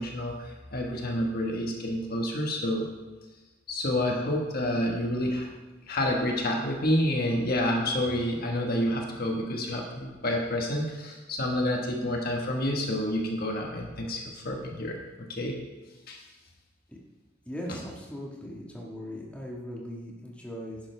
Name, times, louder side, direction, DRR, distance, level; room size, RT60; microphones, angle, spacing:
voice 1, 0.0-2.9 3.7-5.5 5.9-15.6 16.1-16.2, left 1 dB, 45° left, 1 dB, 1.4 m, -29 dB
voice 2, 17.4-20.8, equal, 5° left, -3 dB, 1.5 m, -39 dB
11.5 x 10.5 x 3.3 m, 1.2 s
head